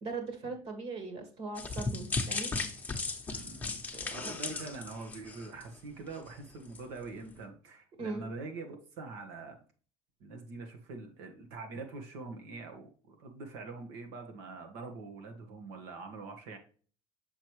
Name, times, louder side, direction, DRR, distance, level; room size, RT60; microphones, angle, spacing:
voice 1, 0.0-2.5 3.9-4.2 8.0-8.2, right 3 dB, 50° right, 6 dB, 2.0 m, -39 dB
sound 1, 1.6-5.8 6.1-6.3 6.7-6.8, left 3 dB, 15° left, 1.0 m, -36 dB
voice 2, 3.3-9.6 10.2-16.6, right 3 dB, 85° right, 4 dB, 1.5 m, -44 dB
6.7 x 4.7 x 3.1 m, 0.41 s
cardioid pair, 115°, 13 cm